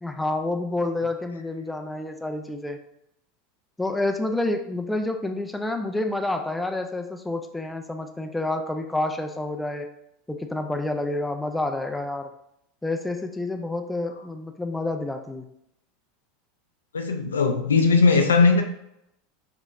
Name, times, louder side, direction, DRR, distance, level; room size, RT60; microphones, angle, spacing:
voice 1, 0.0-2.8 3.8-9.9 10.3-12.3 12.8-15.5, left 2 dB, 5° left, 5 dB, 0.4 m, -28 dB
voice 2, 16.9-18.6, left 4 dB, 75° left, 5 dB, 0.4 m, -19 dB
5.5 x 2.9 x 2.5 m, 0.81 s
figure-of-eight pair, 80°, 0 cm